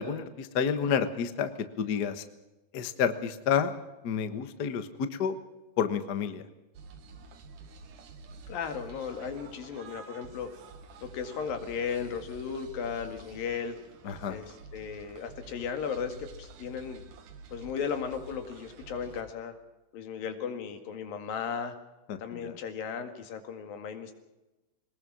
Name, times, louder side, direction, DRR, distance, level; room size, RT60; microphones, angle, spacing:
voice 1, 0.0-1.5 1.8-2.3 2.7-3.7 4.0-5.4 5.8-6.4 14.0-14.4 22.1-22.6, left 7 dB, 65° left, 10 dB, 1.0 m, -30 dB
sound 1, 6.7-19.2, right 4 dB, 70° right, 3.2 m, -49 dB
voice 2, 8.5-10.5 11.0-13.8 14.3-17.0 17.5-19.5 19.9-21.8 22.2-24.2, left 6 dB, 85° left, 7 dB, 3.8 m, -36 dB
22.5 x 20.0 x 6.3 m, 1.0 s
omnidirectional pair, 4.0 m